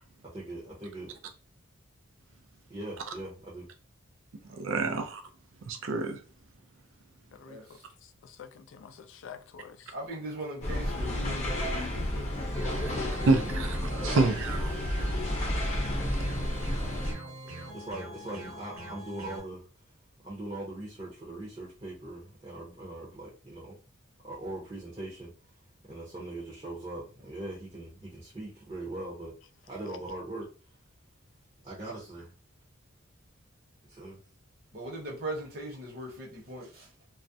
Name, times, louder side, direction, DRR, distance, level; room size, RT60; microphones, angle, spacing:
voice 1, 0.3-1.2 2.7-3.7 12.9-13.5 17.7-19.7 20.2-23.8 24.2-25.3 25.9-29.3 29.7-30.5 31.6-32.3 33.9-34.2, right 2 dB, 25° right, 0.7 m, -40 dB
voice 2, 4.5-5.2 5.7-6.2 13.3-13.8 14.0-14.8, right 3 dB, 70° right, 0.4 m, -27 dB
voice 3, 7.3-9.9 11.5-11.8, left 7 dB, 60° left, 0.3 m, -48 dB
voice 4, 9.9-12.3 12.6-13.2 13.8-14.3 16.8-16.9 17.4-17.6 34.7-36.9, right 1 dB, 50° right, 0.9 m, -40 dB
sound 1, 10.6-17.1, left 1 dB, 35° left, 0.8 m, -31 dB
sound 2, 12.5-19.4, right 1 dB, 90° right, 0.9 m, -43 dB
2.3 x 2.0 x 2.6 m
head